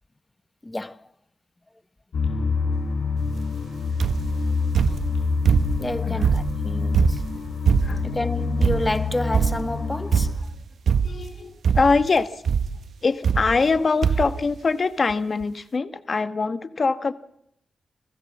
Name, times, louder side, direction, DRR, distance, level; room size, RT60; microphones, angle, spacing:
voice 1, 0.6-1.0 5.8-7.2 8.0-10.3, left 2 dB, 15° left, 0.8 m, -29 dB
sound 1, 2.1-10.3, left 4 dB, 85° left, 6.0 m, -27 dB
sound 2, 4.0-4.4 4.8-5.9 6.2-8.2 8.6-9.0 9.3-9.8 10.1-10.5 10.9-11.4 11.6-12.1 12.5-12.8 13.2-13.8 14.0-14.4 15.1-15.2 15.4-15.5, right 6 dB, 70° right, 1.1 m, -22 dB
voice 2, 11.0-12.4 13.0-17.1, left 4 dB, 40° left, 1.2 m, -23 dB
29.5 x 15.5 x 7.3 m
wide cardioid pair, 130°, 0 cm